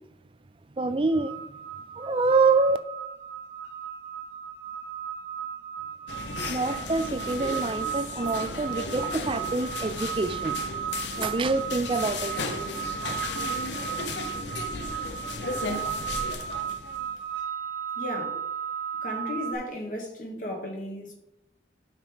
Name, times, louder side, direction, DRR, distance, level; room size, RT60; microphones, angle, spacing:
voice 1, 0.8-1.3 2.0-2.8 6.5-10.6 11.2-12.4, right 3 dB, 30° right, 0.4 m, -26 dB
sound 1, 1.1-19.5, right 8 dB, 15° right, 1.9 m, -35 dB
sound 2, 6.1-17.2, left 3 dB, 80° left, 0.8 m, -35 dB
voice 2, 18.0-18.4 19.0-21.1, left 1 dB, 45° left, 1.9 m, -35 dB
9.1 x 5.7 x 3.4 m
head